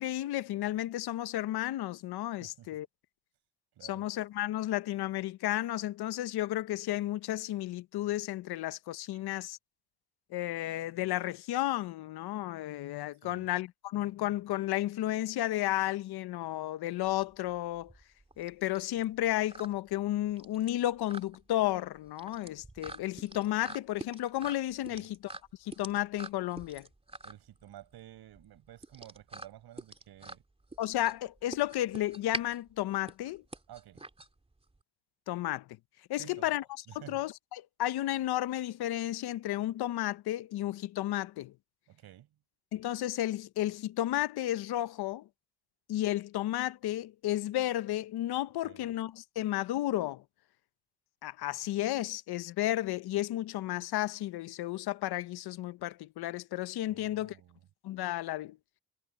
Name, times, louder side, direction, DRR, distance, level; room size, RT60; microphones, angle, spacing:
voice 1, 0.0-2.9 3.8-9.6 10.3-17.9 18.4-25.2 25.6-26.9 30.8-33.4 35.3-35.7 36.1-36.6 37.1-41.5 42.7-45.3 45.9-50.2 51.2-57.4 57.8-58.6, left 14 dB, 85° left, 0.8 m, -33 dB
voice 2, 2.4-2.8 3.7-4.1 9.1-9.2 13.2-13.5 24.9-25.1 27.2-30.4 33.7-34.0 36.2-36.6 36.9-37.2 41.9-42.3 48.6-48.9 56.9-57.6, right 12 dB, 85° right, 7.2 m, -52 dB
sound 1, 17.0-34.8, right 2 dB, 15° right, 3.0 m, -46 dB
cardioid pair, 100°, 37 cm